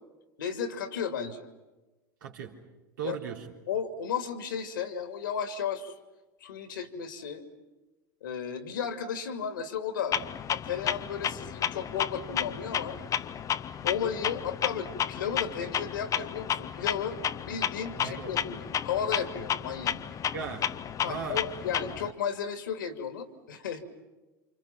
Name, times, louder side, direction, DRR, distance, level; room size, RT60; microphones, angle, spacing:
voice 1, 0.4-1.5 3.0-3.2 3.7-5.9 6.4-7.4 8.2-10.2 10.5-13.0 13.8-20.0 21.0-23.9, left 7 dB, 75° left, 8 dB, 2.5 m, -34 dB
voice 2, 2.2-2.6 3.0-3.5 17.9-18.5 20.3-20.7 21.0-21.4, right 6 dB, 70° right, 1 dB, 3.5 m, -37 dB
Clock, 10.1-22.1, left 9 dB, 30° left, 0.9 m, -32 dB
29.5 x 27.0 x 5.9 m, 1.1 s
figure-of-eight pair, 85°, 11 cm